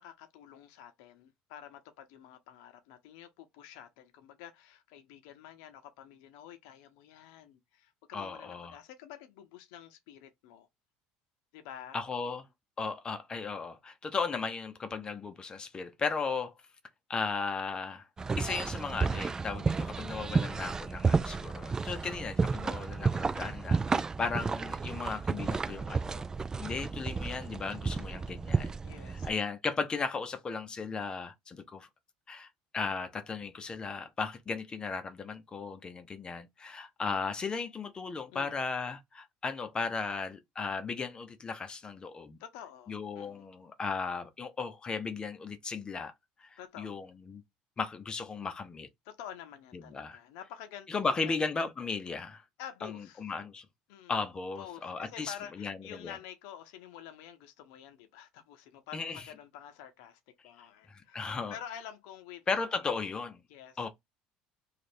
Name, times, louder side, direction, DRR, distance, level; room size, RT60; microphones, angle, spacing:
voice 1, 0.0-10.7 11.5-12.0 28.8-29.3 38.3-38.6 42.4-43.4 46.6-47.0 49.0-51.4 52.6-53.2 53.9-54.2 54.6-62.4 62.8-62.9 63.5-63.9, left 10 dB, 85° left, 0.7 m, -49 dB
voice 2, 8.1-8.8 11.9-12.5 12.8-16.5 17.1-18.1 18.4-26.3 26.6-28.8 29.1-31.9 32.3-32.5 32.7-42.4 42.9-46.1 46.4-47.4 47.8-48.9 49.7-50.2 50.9-52.4 52.8-53.7 54.1-56.2 58.9-59.2 60.9-61.6 62.5-63.4 63.8-63.9, left 4 dB, 25° left, 0.7 m, -36 dB
sound 1, 18.2-29.3, right 4 dB, 20° right, 0.3 m, -32 dB
3.1 x 2.4 x 4.2 m
supercardioid pair, 110°, 3 cm